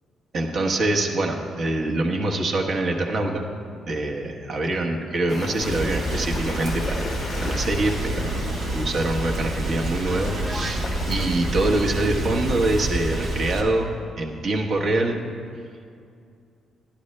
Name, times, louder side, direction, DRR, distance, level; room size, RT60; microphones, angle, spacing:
voice 1, 0.3-3.4 3.9-7.1 7.3-13.9 14.2-15.2, right 2 dB, 55° right, 1 dB, 1.2 m, -25 dB
sound 1, 5.3-12.9, left 4 dB, 45° left, 0.4 m, -36 dB
Rain, 5.6-13.6, right 1 dB, 80° right, 1.8 m, -28 dB
Piano, 10.0-10.9, equal, 5° right, 0.5 m, -35 dB
11.5 x 11.0 x 3.3 m, 2.3 s
cardioid pair, 90°, 0 cm